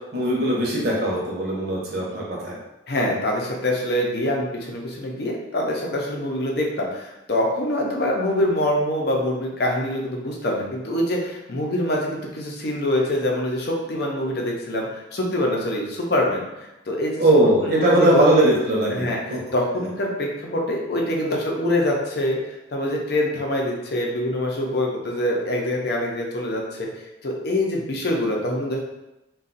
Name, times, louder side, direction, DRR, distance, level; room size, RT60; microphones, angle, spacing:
voice 1, 0.1-2.6 17.2-19.4, right 1 dB, 55° right, -3 dB, 0.8 m, -20 dB
voice 2, 2.9-18.1 18.9-26.9 27.2-28.8, left 1 dB, 55° left, -1 dB, 0.6 m, -25 dB
2.5 x 2.3 x 3.9 m, 0.94 s
head